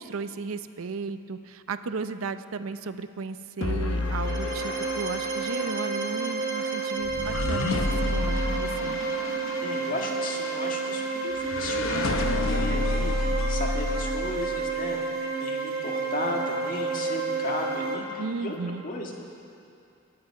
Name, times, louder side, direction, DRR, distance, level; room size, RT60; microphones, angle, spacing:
voice 1, 0.0-9.0 18.2-18.8, right 4 dB, 80° right, 11 dB, 0.6 m, -35 dB
sound 1, 3.6-14.9, left 2 dB, 70° left, 0.8 m, -30 dB
sound 2, 3.9-17.9, right 4 dB, 45° right, 1.3 m, -30 dB
voice 2, 9.6-18.5 18.8-19.1, left 2 dB, 40° left, 0 dB, 1.8 m, -35 dB
23.0 x 9.6 x 4.7 m, 2.6 s
head